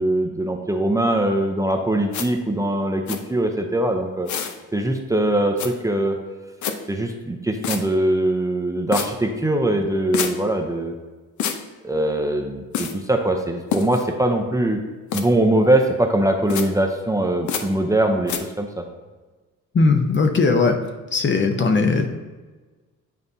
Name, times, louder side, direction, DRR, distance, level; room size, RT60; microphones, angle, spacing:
voice 1, 0.0-4.3 4.7-6.2 6.9-10.9 11.8-14.8 15.1-18.8, right 1 dB, 10° right, 2 dB, 0.6 m, -22 dB
sound 1, 2.1-2.3 3.1-3.2 4.3-4.6 5.6-5.7 6.6-6.8 7.6-7.8 8.9-9.1 10.1-10.3 11.4-11.6 12.7-12.9 13.7-14.0 15.1-15.2 16.5-16.7 17.5-17.6 18.3-18.4, left 7 dB, 75° left, 0.7 m, -26 dB
voice 2, 19.7-20.8 21.1-22.2, left 4 dB, 40° left, 5 dB, 0.8 m, -18 dB
9.2 x 4.1 x 2.7 m, 1.3 s
cardioid pair, 90°, 30 cm